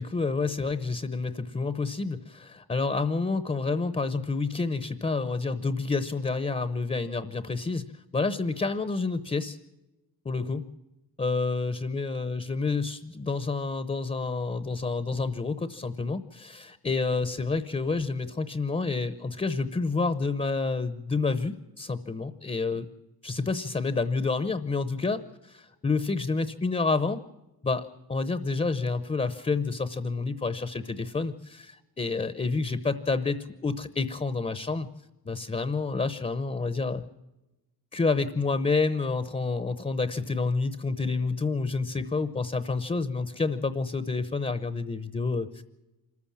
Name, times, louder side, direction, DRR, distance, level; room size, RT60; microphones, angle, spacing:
voice 1, 0.0-7.8 8.1-9.6 10.2-10.7 11.2-22.9 23.2-27.2 27.6-34.9 35.2-37.0 37.9-45.6, left 3 dB, 20° left, 13 dB, 0.8 m, -29 dB
25.5 x 14.5 x 7.3 m, 1.0 s
wide cardioid pair, 125°, 37 cm